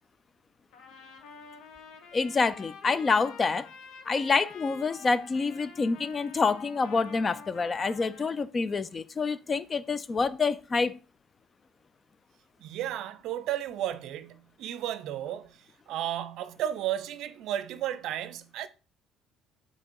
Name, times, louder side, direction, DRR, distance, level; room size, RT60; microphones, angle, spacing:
Trumpet, 0.7-8.5, left 6 dB, 65° left, 1.0 m, -48 dB
voice 1, 2.1-3.7 4.1-11.0, left 4 dB, 35° left, 0.5 m, -27 dB
voice 2, 12.6-18.7, right 11 dB, 65° right, 0.5 m, -33 dB
7.2 x 2.9 x 4.6 m
hypercardioid pair, 60°, 0 cm